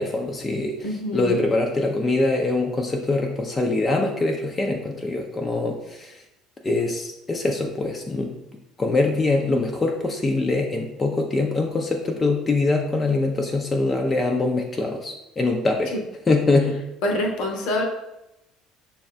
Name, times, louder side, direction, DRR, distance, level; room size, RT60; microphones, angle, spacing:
voice 1, 0.0-6.2 6.6-8.3 8.8-15.9 16.3-16.7, left 2 dB, 25° left, 1 dB, 0.5 m, -23 dB
voice 2, 0.8-1.4 17.0-17.8, left 1 dB, 55° left, 2 dB, 0.7 m, -25 dB
6.7 x 2.3 x 2.2 m, 0.92 s
figure-of-eight pair, 60°, 0 cm